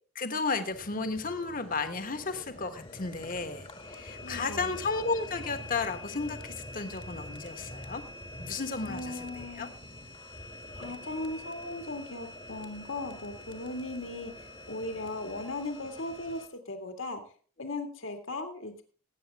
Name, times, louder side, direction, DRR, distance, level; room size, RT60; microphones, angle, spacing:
voice 1, 0.1-8.0 8.4-9.7, left 4 dB, 40° left, 9 dB, 1.3 m, -33 dB
sound 1, 0.7-16.5, left 1 dB, 25° left, 1.2 m, -45 dB
voice 2, 4.2-4.8 8.9-9.7 10.7-14.3 14.7-17.2 17.6-18.8, left 2 dB, 65° left, 6 dB, 1.9 m, -37 dB
17.5 x 8.8 x 3.5 m, 0.40 s
head